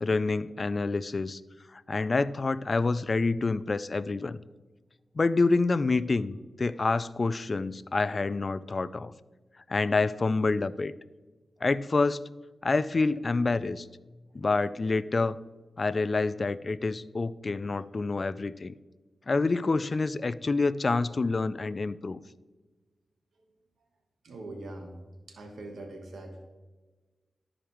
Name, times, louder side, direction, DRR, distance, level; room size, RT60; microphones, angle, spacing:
voice 1, 0.0-1.4 1.7-4.4 5.2-9.1 9.7-10.9 11.6-12.2 12.6-13.9 14.3-15.4 15.8-18.7 19.3-22.2, left 3 dB, 50° left, 17 dB, 0.3 m, -27 dB
voice 2, 24.2-24.9 25.3-26.5, right 2 dB, 85° right, 3 dB, 1.2 m, -43 dB
12.5 x 5.0 x 3.1 m, 1.3 s
cardioid pair, 60°, 0 cm